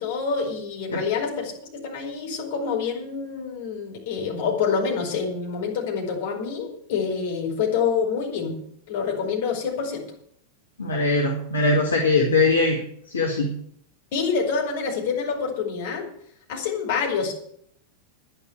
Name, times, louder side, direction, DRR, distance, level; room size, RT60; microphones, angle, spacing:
voice 1, 0.0-8.6 8.9-10.0 14.1-16.1 16.5-17.3, left 6 dB, 50° left, 0 dB, 4.9 m, -27 dB
voice 2, 10.8-12.8 13.1-13.5, left 3 dB, 70° left, -1 dB, 2.1 m, -21 dB
11.0 x 10.5 x 8.4 m, 0.68 s
figure-of-eight pair, 90°, 0 cm